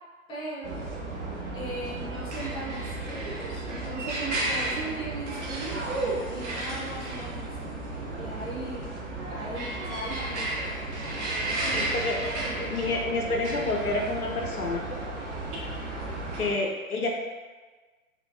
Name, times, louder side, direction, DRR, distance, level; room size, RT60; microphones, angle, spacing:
voice 1, 0.3-0.8 1.5-5.8 6.3-7.8 8.2-8.9 9.3-12.0 12.4-13.1, right 1 dB, 10° left, -10 dB, 1.1 m, -39 dB
sound 1, 0.6-16.5, right 2 dB, 55° right, 0.9 m, -33 dB
voice 2, 11.7-12.2 12.7-14.8 16.4-17.1, left 2 dB, 85° left, 0 dB, 0.7 m, -28 dB
3.7 x 3.3 x 2.6 m, 1.3 s
figure-of-eight pair, 120°, 43 cm